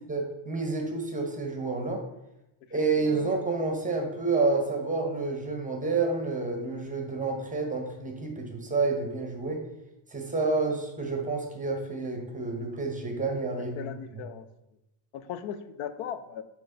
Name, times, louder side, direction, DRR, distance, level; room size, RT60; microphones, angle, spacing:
voice 1, 0.1-2.0 2.7-9.6 10.1-14.2, right 3 dB, 15° right, 3 dB, 0.8 m, -29 dB
voice 2, 13.6-14.5 15.1-16.4, left 8 dB, 80° left, 12 dB, 0.7 m, -38 dB
7.4 x 3.0 x 5.5 m, 0.91 s
cardioid pair, 165°, 47 cm